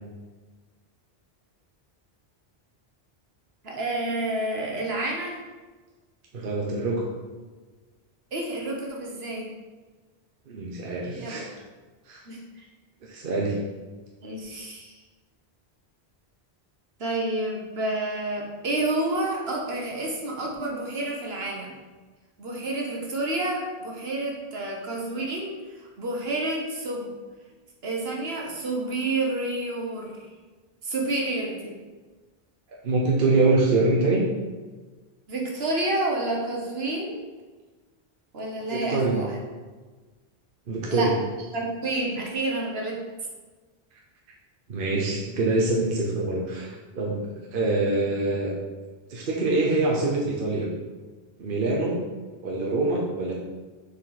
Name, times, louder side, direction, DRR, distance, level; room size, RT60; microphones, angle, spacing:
voice 1, 3.6-5.4 8.3-9.5 11.1-11.5 12.3-12.7 14.2-15.0 17.0-21.8 22.4-25.5 25.8-27.1 27.8-30.2 30.8-31.8 35.3-37.2 38.3-39.3 40.9-41.1 41.5-43.0, right 2 dB, 75° right, -1 dB, 1.4 m, -29 dB
voice 2, 6.3-7.1 10.5-11.5 12.1-12.2 13.0-13.6 32.8-34.3 38.5-39.2 40.7-41.1 44.7-48.5 49.1-50.7 51.4-52.0 52.4-53.3, right 2 dB, 60° right, -2 dB, 1.0 m, -25 dB
6.7 x 4.6 x 4.0 m, 1.3 s
omnidirectional pair, 1.0 m